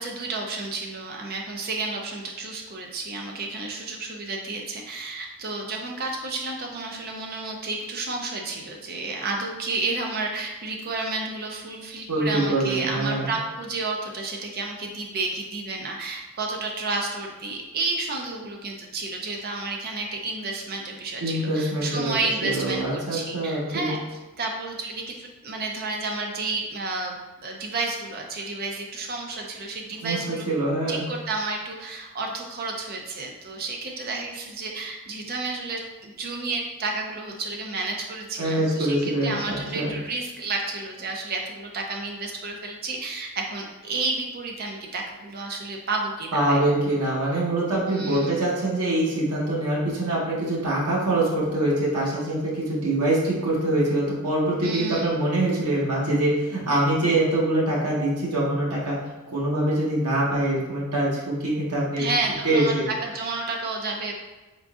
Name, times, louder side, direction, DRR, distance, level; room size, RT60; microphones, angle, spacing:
voice 1, 0.0-24.0 24.4-30.5 30.9-46.6 47.9-48.4 54.6-55.2 62.0-64.1, right 3 dB, 45° right, 1 dB, 0.5 m, -31 dB
voice 2, 12.1-13.3 21.2-22.1 22.4-23.9 30.0-31.0 38.4-39.9 46.3-59.0 59.3-62.1 62.4-62.9, right 1 dB, 85° right, -5 dB, 1.1 m, -24 dB
3.7 x 3.7 x 2.4 m, 1.2 s
head